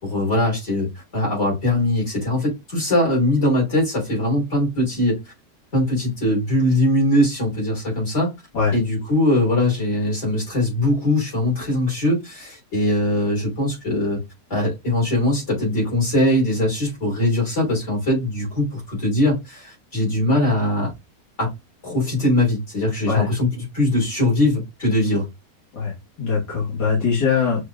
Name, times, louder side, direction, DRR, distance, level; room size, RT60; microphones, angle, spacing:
voice 1, 0.0-5.2 5.7-8.3 8.7-14.2 14.5-20.9 21.4-21.5 21.8-25.3, left 1 dB, 40° left, -3 dB, 3.4 m, -21 dB
voice 2, 26.2-27.6, left 5 dB, 65° left, -6 dB, 2.1 m, -21 dB
6.1 x 3.5 x 2.3 m, 0.21 s
omnidirectional pair, 1.9 m